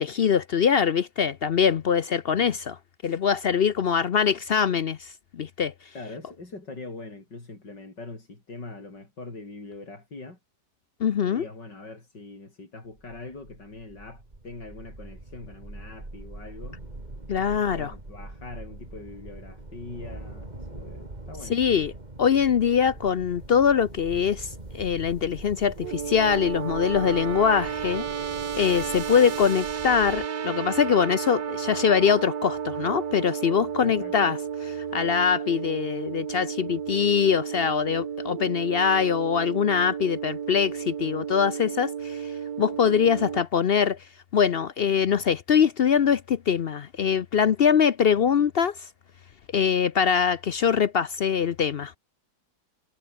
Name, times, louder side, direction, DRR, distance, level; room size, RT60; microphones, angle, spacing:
voice 1, 0.0-2.8 3.0-5.1 5.3-5.7 11.0-11.4 17.3-17.9 21.5-21.9 22.2-24.5 24.7-28.0 28.6-34.4 34.9-42.2 42.6-44.0 44.3-48.7 49.5-51.9, left 7 dB, 65° left, 0.6 m, -23 dB
voice 2, 5.9-10.4 11.2-16.8 17.5-21.9 33.8-34.4, left 3 dB, 90° left, 6.1 m, -42 dB
sound 1, 13.0-30.3, right 2 dB, 25° right, 3.3 m, -43 dB
sound 2, 25.8-43.4, right 7 dB, 85° right, 2.2 m, -32 dB
omnidirectional pair, 1.8 m